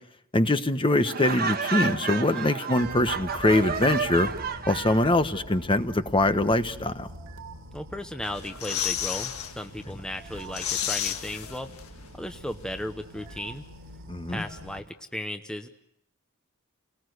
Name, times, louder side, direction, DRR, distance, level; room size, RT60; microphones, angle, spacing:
voice 1, 0.3-4.3 4.7-7.1 14.1-14.5, left 1 dB, 25° left, 9 dB, 1.1 m, -23 dB
Laughter, 1.1-5.1, right 5 dB, 45° right, 1.4 m, -30 dB
sound 1, 2.8-14.9, right 1 dB, 65° right, 2.0 m, -45 dB
voice 2, 7.7-11.7 12.1-13.6 14.3-15.7, left 1 dB, 5° left, 6 dB, 0.9 m, -36 dB
sound 2, 8.2-9.5 9.9-10.0 10.3-12.1 12.3-12.4, left 9 dB, 70° left, 1.7 m, -31 dB
30.0 x 19.5 x 8.1 m, 0.76 s
head